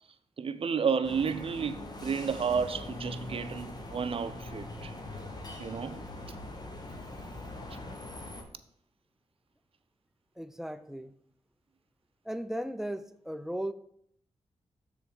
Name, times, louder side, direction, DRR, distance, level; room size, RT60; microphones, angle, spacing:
voice 1, 0.4-4.9 5.6-6.0, right 6 dB, 55° right, 0.6 m, -31 dB
sound 1, 1.0-8.4, left 1 dB, 35° left, 1.4 m, -42 dB
voice 2, 10.4-11.1 12.2-13.7, right 1 dB, 5° right, 0.5 m, -36 dB
6.7 x 3.9 x 6.4 m
cardioid pair, 60°, 11 cm